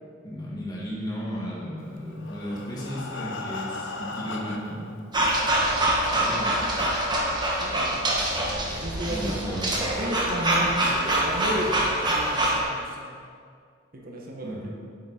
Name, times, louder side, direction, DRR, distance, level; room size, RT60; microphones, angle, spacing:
voice 1, 0.2-4.9 6.2-6.6 8.3-8.4 9.1-9.7 14.4-14.7, equal, 20° left, -7 dB, 1.9 m, -34 dB
Breathing, 2.0-4.9 5.7-5.8 6.2-6.3 6.7-6.8, left 3 dB, 60° left, 0.6 m, -37 dB
sound 1, 5.1-12.6, right 1 dB, 20° right, 1.1 m, -25 dB
voice 2, 7.6-8.0 8.7-9.6 10.0-13.3 13.9-14.7, equal, 45° right, -1 dB, 1.1 m, -33 dB
8.4 x 6.0 x 4.3 m, 2.1 s
head